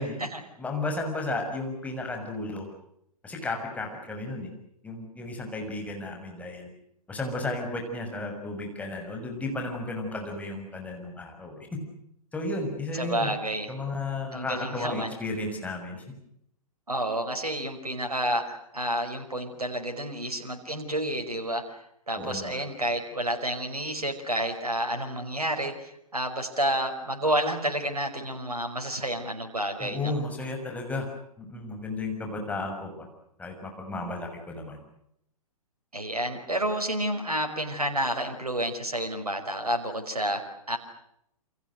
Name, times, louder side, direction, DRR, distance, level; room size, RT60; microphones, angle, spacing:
voice 1, 0.0-0.4 12.9-13.7 14.3-15.1 16.9-21.8 22.1-30.1 35.9-40.4 40.7-40.8, right 1 dB, 80° right, 5 dB, 5.4 m, -30 dB
voice 2, 0.6-2.7 3.2-4.5 4.8-6.7 7.1-11.8 12.3-13.3 13.7-16.0 22.2-22.6 29.8-31.1 31.4-33.1 33.4-34.8, left 2 dB, 5° left, 3 dB, 6.6 m, -33 dB
29.5 x 27.0 x 6.4 m, 0.75 s
figure-of-eight pair, 120°, 19 cm